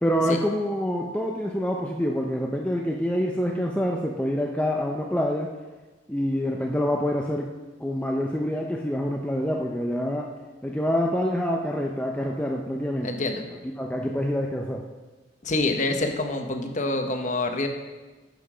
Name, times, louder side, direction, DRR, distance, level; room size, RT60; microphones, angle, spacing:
voice 1, 0.0-5.5 6.1-10.3 10.6-13.1 13.8-14.8, equal, 5° left, -1 dB, 0.6 m, -26 dB
voice 2, 13.0-13.4 15.4-17.7, left 2 dB, 40° left, 5 dB, 1.0 m, -26 dB
10.5 x 6.7 x 5.0 m, 1.3 s
head